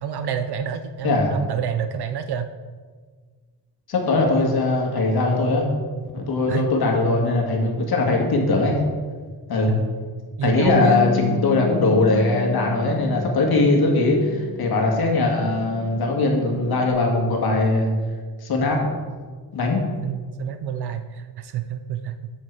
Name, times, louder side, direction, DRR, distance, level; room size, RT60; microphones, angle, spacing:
voice 1, 0.0-2.5 6.5-6.7 9.7-9.9 10.4-11.2 20.0-22.3, right 8 dB, 70° right, 9 dB, 0.6 m, -28 dB
voice 2, 3.9-5.7 6.1-8.8 9.5-9.8 10.4-17.9 18.4-18.9 19.5-19.8, left 2 dB, 60° left, 0 dB, 1.9 m, -20 dB
Bass guitar, 10.7-16.9, left 7 dB, 10° left, 0.4 m, -32 dB
7.4 x 7.3 x 4.7 m, 1.5 s
wide cardioid pair, 135°, 41 cm